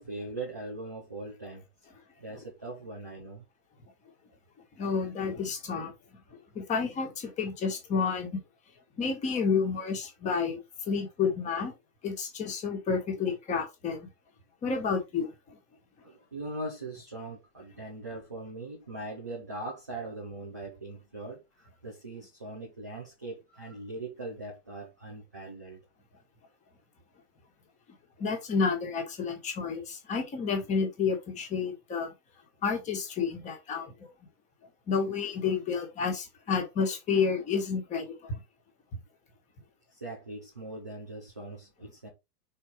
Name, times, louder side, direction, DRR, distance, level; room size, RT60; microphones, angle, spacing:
voice 1, 0.0-1.9 2.2-3.4 16.0-25.8 39.9-42.1, right 2 dB, 15° right, 0.4 m, -41 dB
voice 2, 4.7-5.9 6.5-8.4 9.0-10.6 10.9-11.7 12.0-14.1 14.6-15.6 28.2-32.1 32.6-33.9 34.9-38.4, left 5 dB, 15° left, 1.5 m, -30 dB
5.5 x 4.3 x 4.6 m
hypercardioid pair, 160°, 48 cm